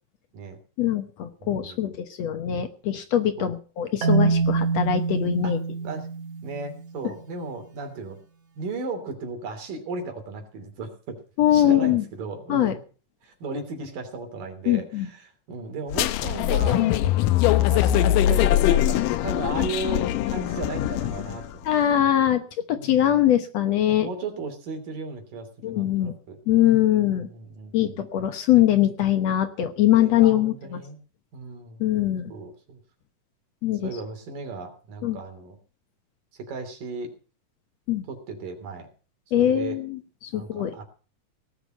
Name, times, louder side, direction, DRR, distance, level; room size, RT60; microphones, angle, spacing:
voice 1, 0.8-5.6 11.4-12.0 12.5-12.7 14.7-15.1 21.7-22.4 22.7-24.1 25.6-26.1 26.5-27.3 27.7-30.8 31.8-32.3 33.6-33.9 35.0-35.2 37.9-38.0 39.3-40.8, left 12 dB, 65° left, 9 dB, 2.0 m, -22 dB
voice 2, 1.4-1.9 3.4-3.5 5.4-5.5 5.8-6.1 6.4-8.2 8.6-11.2 11.5-12.8 13.2-16.9 17.4-21.6 22.8-23.2 23.9-28.0 29.9-31.0 31.3-31.8 32.3-32.8 33.8-35.6 36.5-37.1 38.1-38.9 39.4-39.8 40.3-40.8, right 3 dB, 85° right, 5 dB, 4.7 m, -36 dB
Marimba xylophone, 4.0-7.0, right 4 dB, 65° right, 2.9 m, -25 dB
sound 1, 15.9-21.5, left 13 dB, 85° left, 2.4 m, -22 dB
18.0 x 7.1 x 7.8 m, 0.39 s
omnidirectional pair, 3.8 m